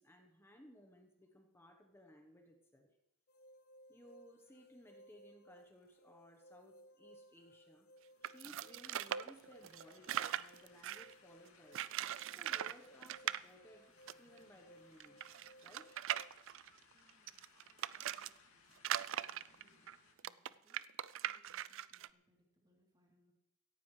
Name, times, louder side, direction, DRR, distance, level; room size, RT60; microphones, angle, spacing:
voice 1, 0.0-2.9 3.9-7.9 8.2-11.8 12.3-15.3 15.6-16.0, equal, 10° left, 4 dB, 1.1 m, -61 dB
sound 1, 3.3-16.3, equal, 45° left, 0.5 m, -63 dB
sound 2, 8.0-20.1, left 4 dB, 80° left, 2.2 m, -67 dB
sound 3, 8.2-11.1 11.7-12.8 13.0-13.4 14.1-14.2 14.4-14.5 15.0-18.3 18.8-22.1, right 11 dB, 60° right, 0.4 m, -40 dB
voice 2, 16.9-23.3, equal, 20° right, -2 dB, 3.3 m, -76 dB
17.0 x 14.5 x 3.3 m, 0.85 s
head